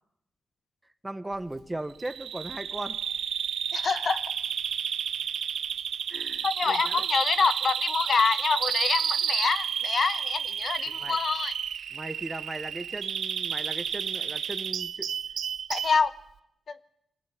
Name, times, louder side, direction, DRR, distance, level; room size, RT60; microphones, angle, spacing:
voice 1, 1.0-3.0 6.1-7.0 11.0-11.2 11.9-15.1, right 1 dB, 15° right, 12 dB, 1.4 m, -37 dB
Bird vocalization bird call bird song, 2.0-16.0, right 8 dB, 85° right, 0.9 m, -31 dB
voice 2, 3.7-4.2 6.4-11.6 15.7-16.1 16.7-16.8, left 5 dB, 55° left, 13 dB, 1.1 m, -26 dB
22.5 x 20.0 x 10.0 m, 0.78 s
cardioid pair, 85°, 0 cm